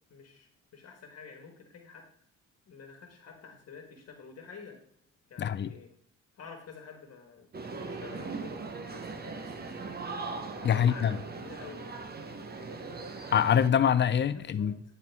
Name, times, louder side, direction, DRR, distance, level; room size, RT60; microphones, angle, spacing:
voice 1, 0.1-2.0 2.7-4.8 5.3-5.9 6.3-7.5 7.7-9.9 10.6-11.8 12.7-13.0 14.3-14.7, left 5 dB, 55° left, 1.5 m, -49 dB
voice 2, 5.4-5.7 10.6-11.2 13.3-14.7, left 8 dB, 35° left, 0.5 m, -24 dB
sound 1, 7.5-13.7, right 4 dB, 30° right, 0.9 m, -40 dB
10.5 x 4.5 x 3.5 m
cardioid pair, 90°, 30 cm